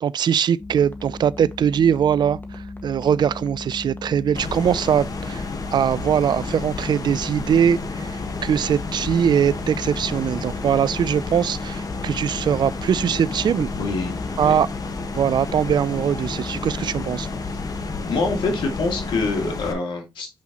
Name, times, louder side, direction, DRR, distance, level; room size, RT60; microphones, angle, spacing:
voice 1, 0.0-13.7 14.4-14.7 15.2-17.3, right 8 dB, 65° right, 0.4 m, -21 dB
sound 1, 0.6-19.5, left 2 dB, 25° left, 1.7 m, -36 dB
sound 2, 4.3-19.7, left 4 dB, 50° left, 1.4 m, -32 dB
voice 2, 13.8-14.6 18.1-20.3, left 3 dB, 80° left, 2.5 m, -25 dB
7.6 x 5.4 x 3.0 m
cardioid pair, 55°, 8 cm